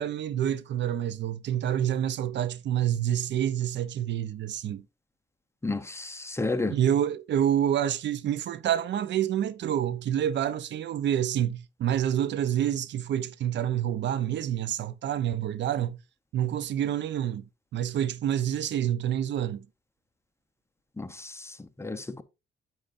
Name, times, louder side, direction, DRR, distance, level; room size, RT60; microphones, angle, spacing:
voice 1, 0.0-4.8 6.7-16.0 16.3-17.4 17.7-19.7, right 10 dB, 65° right, 0.6 m, -28 dB
voice 2, 5.6-6.7 21.0-21.5 21.8-22.2, left 3 dB, 15° left, 0.8 m, -32 dB
8.8 x 7.8 x 2.5 m
cardioid pair, 90°, 20 cm